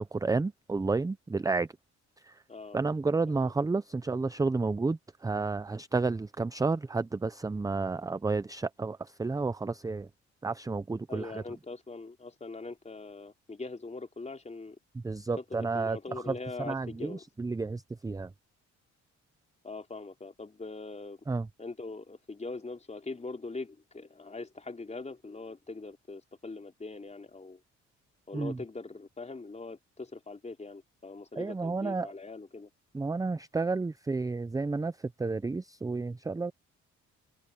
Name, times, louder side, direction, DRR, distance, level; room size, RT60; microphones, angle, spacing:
voice 1, 0.0-1.7 2.2-2.4 2.7-10.1 10.4-11.4 15.0-16.0 16.3-16.4 16.7-18.3 21.3-21.5 28.3-28.6 31.4-32.1 32.9-34.9 35.2-36.5, right 3 dB, 10° right, 0.5 m, -31 dB
voice 2, 2.5-2.8 3.3-3.5 11.1-14.8 15.4-17.2 19.6-21.2 21.6-27.6 28.3-32.7, left 3 dB, 20° left, 4.4 m, -42 dB
open air
cardioid pair, 90°, 30 cm